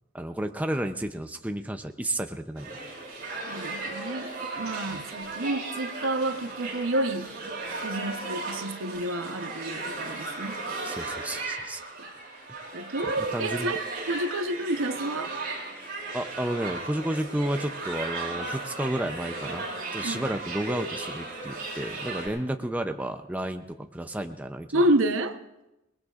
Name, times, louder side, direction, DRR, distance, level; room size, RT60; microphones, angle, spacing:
voice 1, 0.1-2.8 4.9-5.0 10.8-11.8 13.2-13.8 16.1-19.7 19.9-24.8, right 1 dB, 5° right, 6 dB, 0.5 m, -32 dB
sound 1, 2.6-22.3, right 3 dB, 45° right, 5.3 m, -36 dB
voice 2, 3.5-7.3 7.8-10.6 12.7-13.8 14.1-15.3 20.0-20.2 24.7-25.4, right 1 dB, 70° right, 8 dB, 0.9 m, -29 dB
26.0 x 20.0 x 2.5 m, 0.94 s
head